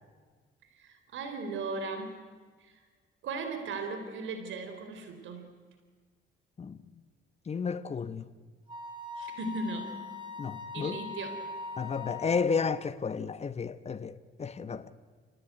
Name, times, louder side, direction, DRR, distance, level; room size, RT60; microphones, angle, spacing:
voice 1, 0.7-2.2 2.6-2.8 3.2-5.5 9.2-10.0 10.7-11.5 14.7-14.9, right 3 dB, 75° right, 3.6 m, -37 dB
voice 2, 7.5-8.3 10.4-11.0 11.8-14.9, left 5 dB, 35° left, 1.2 m, -32 dB
Wind instrument woodwind instrument, 8.7-12.5, left 3 dB, 25° right, 7.4 m, -41 dB
30.0 x 18.0 x 9.3 m
cardioid pair, 90°, 20 cm